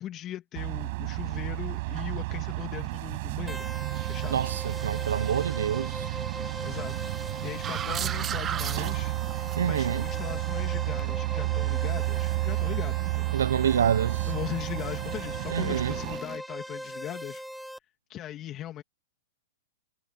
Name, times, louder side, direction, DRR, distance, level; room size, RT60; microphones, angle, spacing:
voice 1, 0.0-3.6 4.1-4.4 6.6-9.2 9.6-13.4 14.3-17.4 18.1-18.8, left 12 dB, 30° left, 2.8 m, -39 dB
sound 1, 0.5-16.2, right 23 dB, 50° right, 6.1 m, -31 dB
sound 2, 3.5-17.8, equal, ahead, 1.1 m, -40 dB
sound 3, 3.9-11.3 15.5-16.4, right 9 dB, 20° right, 1.0 m, -40 dB
voice 2, 4.3-6.1 9.6-10.1 13.3-14.3 15.5-16.0, right 8 dB, 85° right, 0.9 m, -27 dB
hypercardioid pair, 130°, 0 cm